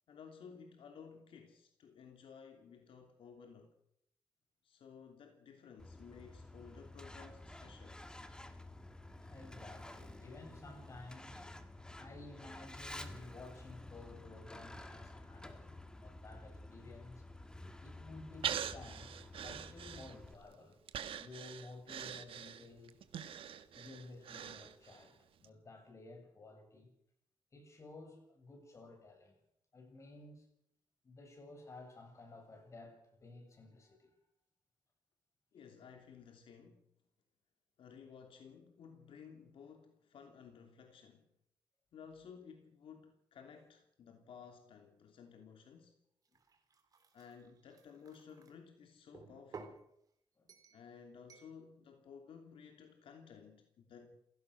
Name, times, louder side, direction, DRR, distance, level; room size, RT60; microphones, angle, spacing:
voice 1, 0.1-3.7 4.6-8.0 35.5-36.9 37.8-41.3 41.9-46.0 47.1-49.8 50.7-54.1, left 6 dB, 75° left, 2.9 m, -56 dB
Truck, 5.8-20.3, left 1 dB, 10° left, 1.8 m, -51 dB
voice 2, 9.3-11.4 11.9-17.2 17.8-19.2 19.4-20.8 21.2-23.0 23.7-26.9 27.5-29.4 29.7-30.5 31.0-34.1 50.4-50.5, left 2 dB, 35° left, 7.1 m, -54 dB
Breathing, 18.4-20.4 20.9-25.1 25.4-25.5, right 9 dB, 80° right, 1.6 m, -43 dB
sound 1, 46.3-48.5 49.1-49.8 50.5-50.8 51.3-51.5, right 4 dB, 40° right, 3.4 m, -55 dB
28.5 x 17.0 x 6.4 m
wide cardioid pair, 155°, 9 cm